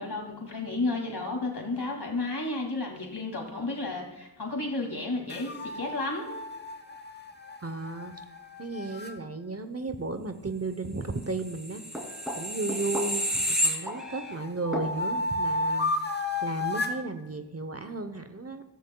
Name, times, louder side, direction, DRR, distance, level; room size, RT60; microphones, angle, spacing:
voice 1, 0.0-6.3, left 2 dB, 65° left, 1 dB, 2.4 m, -32 dB
sound 1, 5.3-9.1 12.1-13.3 13.8-17.0, left 2 dB, 25° left, 1.0 m, -33 dB
voice 2, 7.6-8.1 8.6-11.8 12.4-18.6, right 3 dB, 35° right, 9 dB, 0.8 m, -34 dB
sound 2, 11.4-14.3 14.7-14.9, equal, ahead, 2.7 m, -30 dB
15.0 x 13.5 x 2.3 m, 0.97 s
wide cardioid pair, 45°, 42 cm